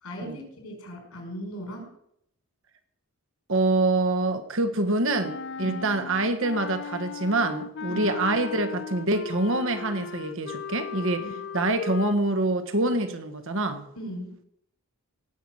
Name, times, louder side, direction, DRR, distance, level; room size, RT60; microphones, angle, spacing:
voice 1, 0.0-1.9 5.6-5.8 7.9-8.1 11.2-11.3 13.9-14.4, equal, 75° left, 2 dB, 4.9 m, -38 dB
voice 2, 3.5-11.2 11.5-13.8, right 2 dB, 60° right, 8 dB, 1.6 m, -25 dB
Wind instrument woodwind instrument, 5.1-12.2, left 6 dB, 50° left, 0.4 m, -37 dB
17.5 x 5.9 x 7.9 m, 0.75 s
head